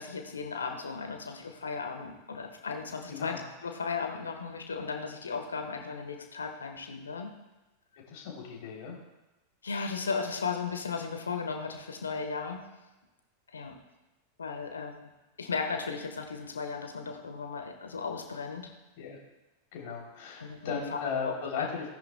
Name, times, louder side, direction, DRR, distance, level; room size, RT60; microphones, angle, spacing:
voice 1, 0.0-7.3 9.6-12.6 13.5-13.7 14.4-15.1 15.4-18.7 20.4-20.8 21.2-21.3 21.6-21.7, left 5 dB, 70° left, 5 dB, 1.3 m, -36 dB
voice 2, 3.1-3.4 8.1-9.0 19.0-19.2 19.7-21.9, left 6 dB, 50° left, -1 dB, 3.3 m, -36 dB
17.5 x 10.5 x 2.3 m, 1.1 s
figure-of-eight pair, 90°, 0 cm